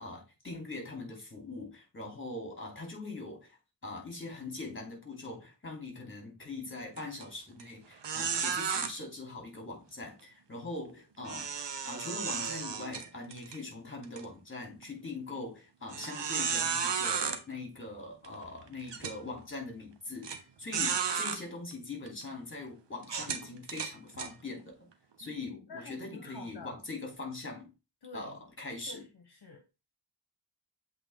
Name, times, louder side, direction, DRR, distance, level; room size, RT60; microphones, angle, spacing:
voice 1, 0.0-3.6 3.8-11.5 11.8-24.9 25.2-27.7 28.1-29.0, left 2 dB, 30° left, 3.0 m, -42 dB
sound 1, 7.0-7.2 7.6-7.7 8.0-8.9 11.3-13.6 14.0-14.2 14.8-14.9 15.9-17.4 18.2-18.3 18.9-19.2 20.2-20.4 20.7-21.4 22.1-22.2 23.0-24.3, right 6 dB, 75° right, 1.0 m, -33 dB
voice 2, 25.2-26.8 28.0-28.3 28.9-29.6, left 4 dB, 65° left, 1.1 m, -48 dB
7.8 x 3.6 x 3.6 m
wide cardioid pair, 80°, 43 cm